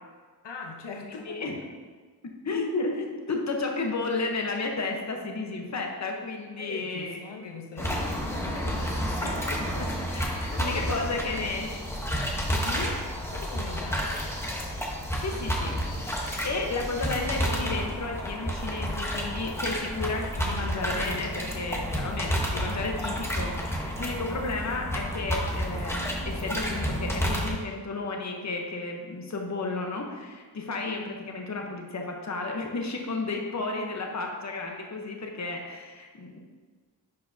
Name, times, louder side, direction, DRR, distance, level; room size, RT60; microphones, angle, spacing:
voice 1, 0.4-1.4 6.6-10.0 10.5-11.5 13.2-14.3, left 4 dB, 80° left, 2 dB, 0.8 m, -41 dB
voice 2, 1.2-1.6 2.2-7.2 7.8-8.0 9.2-9.5 9.8-11.8 12.5-12.9 15.2-15.8 16.2-36.4, left 3 dB, 40° left, 1 dB, 0.9 m, -33 dB
sound 1, 7.8-27.5, equal, 5° left, 0.9 m, -30 dB
10.5 x 4.7 x 2.7 m, 1.5 s
wide cardioid pair, 110°, 42 cm